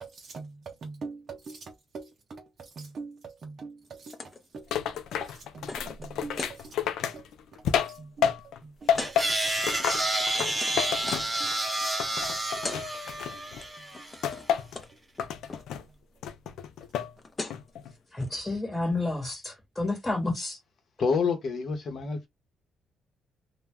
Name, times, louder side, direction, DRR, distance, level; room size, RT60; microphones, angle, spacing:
voice 1, 0.0-4.2 4.5-4.7 5.2-5.7 6.0-6.7 7.1-7.2 7.9-8.3 8.6-9.2 9.7-9.8 10.7-10.8 11.1-11.5, right 4 dB, 50° right, 0.4 m, -43 dB
sound 1, 4.1-4.4 4.7-6.6 7.1-7.3 7.6-7.9 8.9-9.2 9.8-11.4 12.3-12.4 12.5-12.8 13.1-13.6 13.9-14.5 14.7-14.9 15.2-15.6 16.9-17.0 17.2-17.7 18.2-18.3, left 3 dB, 30° left, 0.6 m, -40 dB
sound 2, 4.7-8.6 8.9-11.7 12.0-13.6 14.2-14.8 15.2-15.8 16.2-17.1 17.5-17.9, left 8 dB, 80° left, 0.4 m, -30 dB
sound 3, 9.0-14.3, right 1 dB, 15° right, 1.0 m, -30 dB
voice 2, 18.1-20.6, left 2 dB, 15° left, 1.2 m, -30 dB
voice 3, 21.0-22.3, left 5 dB, 55° left, 0.9 m, -27 dB
2.2 x 2.1 x 3.4 m
cardioid pair, 90°, 0 cm